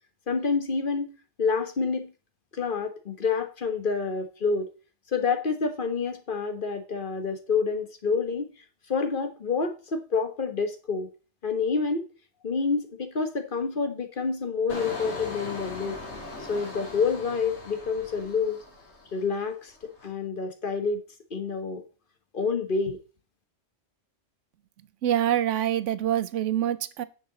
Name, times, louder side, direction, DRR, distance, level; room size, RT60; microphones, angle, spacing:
voice 1, 0.3-1.1 1.4-2.1 2.5-4.7 5.1-8.5 8.9-11.1 11.4-12.1 12.4-16.0 16.5-18.6 19.1-21.0 21.3-21.8 22.3-23.0, left 5 dB, 45° left, 1.5 m, -28 dB
Engine, 14.7-19.4 19.7-20.1, left 2 dB, 60° left, 2.9 m, -39 dB
voice 2, 25.0-27.0, right 11 dB, 75° right, 1.0 m, -25 dB
9.6 x 6.7 x 4.0 m
omnidirectional pair, 1.3 m